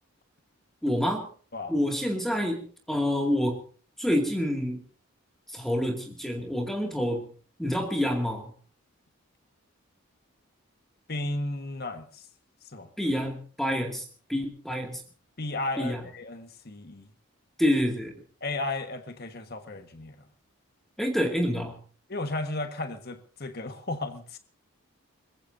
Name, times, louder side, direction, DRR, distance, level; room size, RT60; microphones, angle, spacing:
voice 1, 0.8-1.3 1.7-3.6 4.0-4.8 5.5-7.3 7.6-8.5 13.0-15.0 15.8-16.0 17.6-18.1 21.0-21.8, equal, ahead, 2.3 m, -27 dB
voice 2, 11.1-12.3 12.7-12.9 15.4-17.1 18.4-20.2 22.1-24.4, left 2 dB, 45° left, 1.6 m, -34 dB
23.5 x 21.0 x 2.7 m
head